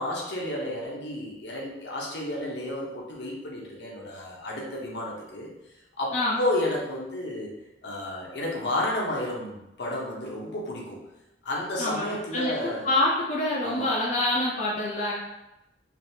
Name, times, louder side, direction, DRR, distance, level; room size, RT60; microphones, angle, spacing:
voice 1, 0.0-5.5 6.0-7.5 7.8-11.0 11.4-12.9 13.6-13.9, left 1 dB, 70° left, -3 dB, 0.8 m, -31 dB
voice 2, 11.8-12.5 12.8-15.1, left 1 dB, 40° left, -6 dB, 0.5 m, -26 dB
3.3 x 2.5 x 2.7 m, 0.93 s
head